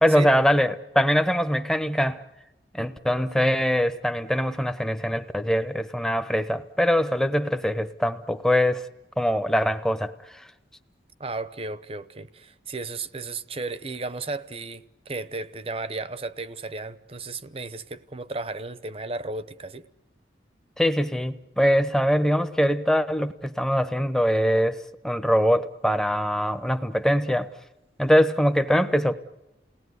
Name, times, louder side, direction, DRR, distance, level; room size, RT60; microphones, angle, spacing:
voice 1, 0.0-2.2 2.7-8.9 9.2-10.4 20.8-24.8 25.0-27.5 28.0-29.1, equal, 5° left, 0.9 m, -23 dB
voice 2, 11.2-19.9, right 3 dB, 30° right, 0.9 m, -34 dB
29.0 x 18.5 x 9.6 m
head